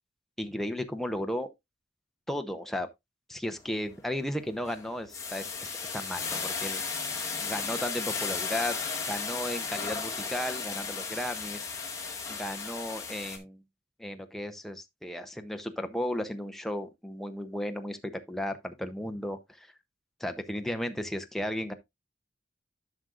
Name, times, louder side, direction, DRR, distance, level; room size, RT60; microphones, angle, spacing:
voice 1, 0.4-1.5 2.3-2.9 3.3-5.5 5.9-6.8 7.4-8.8 9.0-11.6 12.3-13.6 14.0-19.7 20.2-21.7, left 1 dB, ahead, 0.7 m, -34 dB
sound 1, 3.6-3.9 4.3-13.4, left 5 dB, 15° left, 1.9 m, -35 dB
11.5 x 6.3 x 2.5 m
head